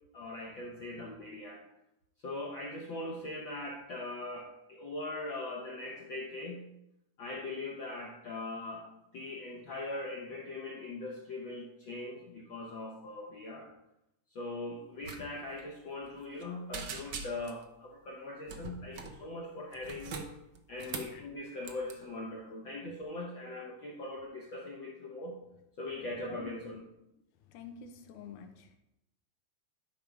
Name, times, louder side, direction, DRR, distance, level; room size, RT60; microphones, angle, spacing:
voice 1, 0.1-1.6 2.2-6.7 7.2-13.7 14.3-20.2 20.7-25.4 25.8-26.8, left 2 dB, 65° left, -2 dB, 1.2 m, -41 dB
sound 1, 15.0-15.2 15.5-15.6 16.0-16.4 16.7-17.6 18.5-19.2 19.7-21.2 21.6-21.9, right 5 dB, 85° right, 1.0 m, -42 dB
voice 2, 26.3-26.8 27.5-28.8, left 6 dB, 90° left, 6 dB, 2.5 m, -48 dB
12.0 x 5.3 x 4.7 m, 0.87 s
omnidirectional pair, 3.5 m